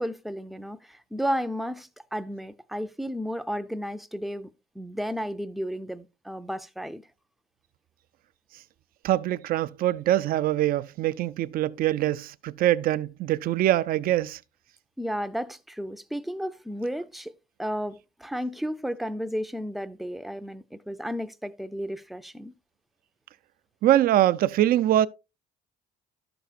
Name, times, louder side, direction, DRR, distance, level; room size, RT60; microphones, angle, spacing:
voice 1, 0.0-7.0 15.0-17.3 17.6-22.5, equal, ahead, 0.4 m, -33 dB
voice 2, 9.0-14.4 23.8-25.1, right 13 dB, 60° right, 0.4 m, -23 dB
11.0 x 6.9 x 2.4 m
cardioid pair, 110°, 17 cm